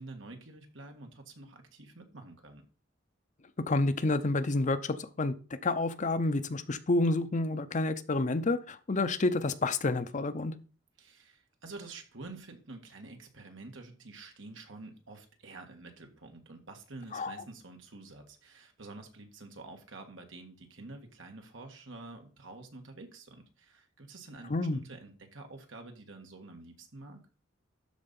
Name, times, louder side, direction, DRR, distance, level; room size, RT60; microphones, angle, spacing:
voice 1, 0.0-2.6 11.0-27.2, right 3 dB, 80° right, 4 dB, 1.8 m, -48 dB
voice 2, 3.7-5.3 5.6-10.5 17.1-17.3 24.5-24.8, left 2 dB, 40° left, 11 dB, 0.7 m, -29 dB
12.5 x 4.2 x 5.4 m, 0.38 s
head